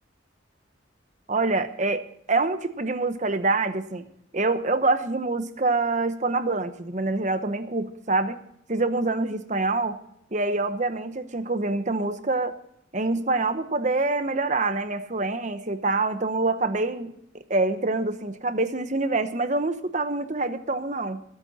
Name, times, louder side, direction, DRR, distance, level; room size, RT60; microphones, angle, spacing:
voice 1, 1.3-2.0 2.3-4.0 4.3-8.4 8.7-10.0 10.3-12.6 12.9-17.1 17.5-21.2, right 3 dB, 40° right, 10 dB, 0.9 m, -25 dB
22.0 x 8.8 x 4.2 m, 0.72 s
head